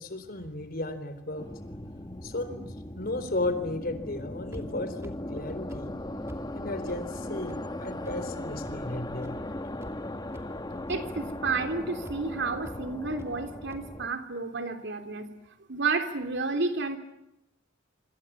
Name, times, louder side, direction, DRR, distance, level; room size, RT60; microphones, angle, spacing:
voice 1, 0.0-1.5 2.2-2.7 3.0-6.0 6.6-9.4, left 2 dB, 50° left, 11 dB, 3.8 m, -34 dB
sound 1, 1.4-14.1, left 1 dB, 20° left, 1.3 m, -38 dB
sound 2, 4.5-4.6 5.0-5.1 5.7-5.8 6.3-6.4 6.9-7.0 7.5-7.6 8.1-8.2 8.7-8.8 9.2-9.3 9.8-9.9 10.3-10.6 10.9-11.0 11.5-11.6 12.1-12.2 12.6-12.8 13.2-13.3 13.7-13.8, equal, 15° right, 2.7 m, -44 dB
voice 2, 10.9-15.3 15.7-17.0, right 4 dB, 60° right, 7 dB, 3.3 m, -31 dB
26.5 x 26.5 x 8.6 m, 0.86 s
head